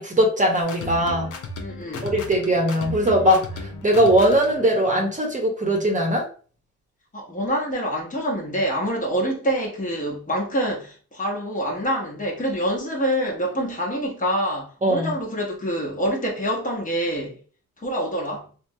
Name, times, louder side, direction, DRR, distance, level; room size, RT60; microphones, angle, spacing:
voice 1, 0.0-1.3 2.0-6.3 14.8-15.1, equal, 25° right, 0.8 m, -20 dB
sound 1, 0.6-4.7, left 2 dB, 80° left, 0.6 m, -34 dB
voice 2, 1.6-2.1 7.1-17.4 17.8-18.5, equal, 25° left, 0.9 m, -26 dB
3.3 x 2.0 x 2.6 m
cardioid pair, 90°, 30 cm